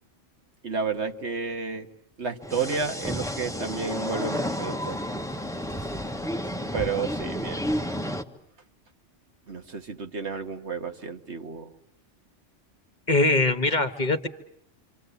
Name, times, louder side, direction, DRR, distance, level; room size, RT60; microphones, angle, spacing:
voice 1, 0.6-1.9 2.2-5.0 5.8-5.9 6.4-7.9 9.5-11.7, right 5 dB, 65° right, 6 dB, 1.9 m, -31 dB
sound 1, 2.4-8.2, equal, 5° left, 1.3 m, -31 dB
voice 2, 13.1-14.3, left 2 dB, 40° left, 8 dB, 1.6 m, -22 dB
27.5 x 26.5 x 8.3 m, 0.69 s
omnidirectional pair, 1.3 m